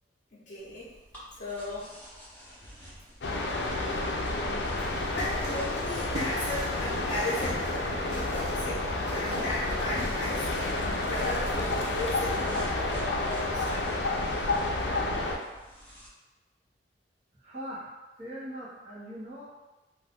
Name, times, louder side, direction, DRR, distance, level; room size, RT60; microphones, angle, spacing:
voice 1, 0.3-0.9 1.3-2.0 5.1-7.7 8.1-8.8 9.1-10.8 11.1-14.0, left 1 dB, 45° left, -11 dB, 0.8 m, -36 dB
sound 1, 0.6-16.1, equal, 10° left, 0.9 m, -48 dB
sound 2, 3.2-15.3, left 2 dB, 75° left, 0.5 m, -30 dB
sound 3, 4.8-10.3, equal, 90° right, 1.0 m, -42 dB
voice 2, 17.3-17.9 18.2-19.4, equal, 40° right, -8 dB, 1.0 m, -40 dB
2.5 x 2.5 x 3.5 m, 1.1 s
head